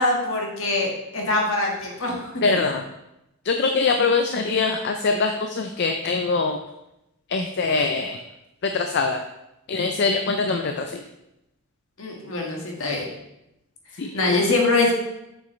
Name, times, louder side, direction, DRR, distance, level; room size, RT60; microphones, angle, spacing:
voice 1, 0.0-2.3 12.0-13.1 14.1-14.9, left 2 dB, 65° left, -1 dB, 1.6 m, -23 dB
voice 2, 2.4-2.8 3.4-6.6 7.3-8.2 8.6-9.2 9.7-11.0 14.0-14.1, left 4 dB, 50° left, 5 dB, 0.4 m, -23 dB
7.4 x 6.1 x 3.1 m, 0.87 s
head